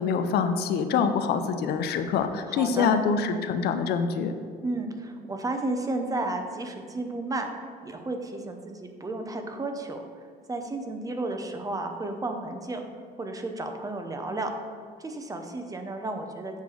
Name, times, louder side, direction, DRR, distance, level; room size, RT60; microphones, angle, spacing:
voice 1, 0.0-4.3, left 6 dB, 70° left, 8 dB, 0.6 m, -25 dB
voice 2, 2.5-2.9 4.6-7.5 7.8-10.0 10.5-12.8 13.2-14.5 15.0-16.6, right 2 dB, 20° right, 5 dB, 0.7 m, -32 dB
8.2 x 3.3 x 6.3 m, 2.1 s
cardioid pair, 110°, 17 cm